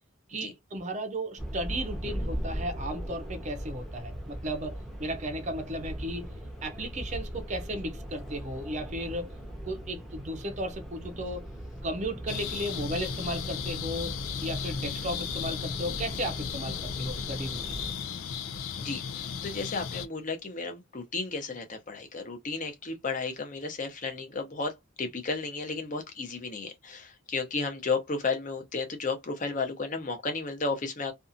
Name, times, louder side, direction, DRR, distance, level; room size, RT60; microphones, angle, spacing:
voice 1, 0.3-6.3 6.6-9.3 9.7-11.5 11.8-17.8, right 1 dB, 35° right, 0.5 m, -35 dB
sound 1, 1.4-17.9, equal, ahead, 0.7 m, -39 dB
sound 2, 12.3-20.1, left 7 dB, 90° left, 0.4 m, -35 dB
voice 2, 18.8-24.7 25.0-31.1, left 4 dB, 40° left, 0.7 m, -33 dB
2.6 x 2.4 x 2.5 m
head